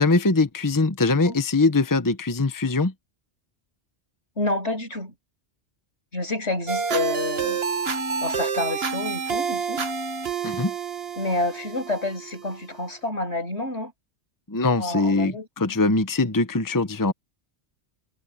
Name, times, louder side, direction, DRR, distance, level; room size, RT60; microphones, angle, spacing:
voice 1, 0.0-2.9 10.4-10.7 14.5-17.1, left 3 dB, 20° left, 0.9 m, -22 dB
voice 2, 4.4-5.1 6.1-7.6 8.2-9.8 11.2-13.9 14.8-15.8, left 2 dB, 80° left, 8.2 m, -29 dB
sound 1, 6.7-12.7, right 5 dB, 60° right, 1.6 m, -28 dB
omnidirectional pair, 1.1 m